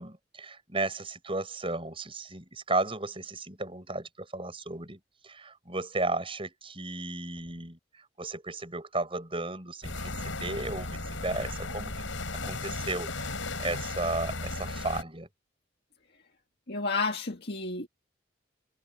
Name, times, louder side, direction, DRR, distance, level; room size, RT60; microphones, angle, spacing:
voice 1, 0.0-13.3 13.6-15.3, right 2 dB, 30° right, 6.7 m, -34 dB
sound 1, 9.8-15.0, left 2 dB, 80° left, 6.0 m, -35 dB
voice 2, 16.7-17.9, left 3 dB, 55° left, 2.0 m, -31 dB
head